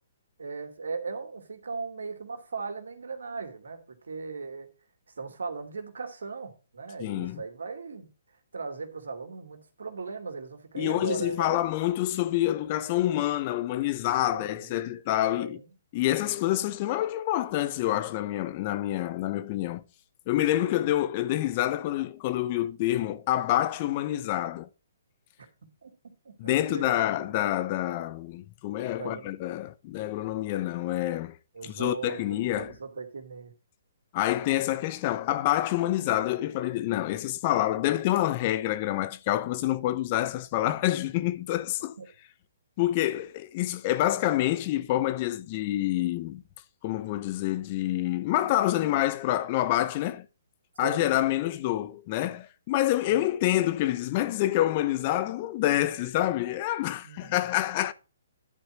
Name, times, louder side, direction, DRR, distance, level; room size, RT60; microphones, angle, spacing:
voice 1, 0.4-4.7 5.2-8.1 8.5-11.6 14.3-14.8 15.3-15.7 25.8-25.9 26.4-27.4 28.9-29.3 31.5-33.5 42.0-42.1 50.8-51.0 53.1-53.2 57.0-57.4, right 4 dB, 80° right, 2.5 m, -38 dB
voice 2, 7.0-7.4 10.8-15.6 15.9-19.8 20.3-24.7 26.4-31.4 31.6-32.7 34.1-42.0 42.8-46.4 46.8-50.3 50.8-57.9, left 14 dB, 35° left, 0.8 m, -27 dB
11.0 x 4.4 x 6.1 m
hypercardioid pair, 145°, 0 cm